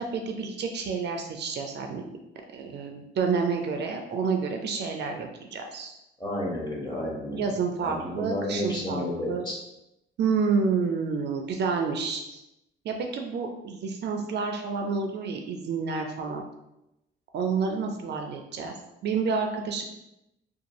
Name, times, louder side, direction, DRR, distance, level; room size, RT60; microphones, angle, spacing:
voice 1, 0.0-2.0 2.5-6.0 7.3-9.4 10.2-12.4 12.8-16.4 17.3-18.8 19.0-19.8, right 5 dB, 60° right, 4 dB, 0.4 m, -29 dB
voice 2, 6.2-7.5 7.8-9.5, left 1 dB, 20° left, -5 dB, 1.2 m, -31 dB
2.6 x 2.3 x 2.9 m, 0.89 s
cardioid pair, 90°, 20 cm